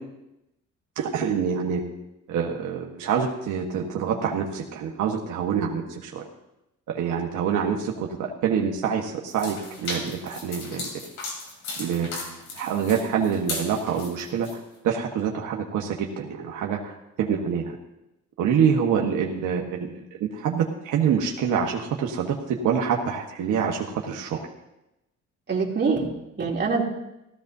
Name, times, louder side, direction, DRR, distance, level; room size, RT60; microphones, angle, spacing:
voice 1, 1.0-1.8 2.3-6.2 6.9-10.9 11.8-17.8 18.4-24.4, right 7 dB, 85° right, 0 dB, 1.3 m, -26 dB
sound 1, 9.3-14.5, left 3 dB, 85° left, 3.2 m, -36 dB
voice 2, 25.5-26.8, right 4 dB, 35° right, -2 dB, 2.9 m, -25 dB
16.0 x 14.5 x 2.7 m, 0.90 s
cardioid pair, 90°, 30 cm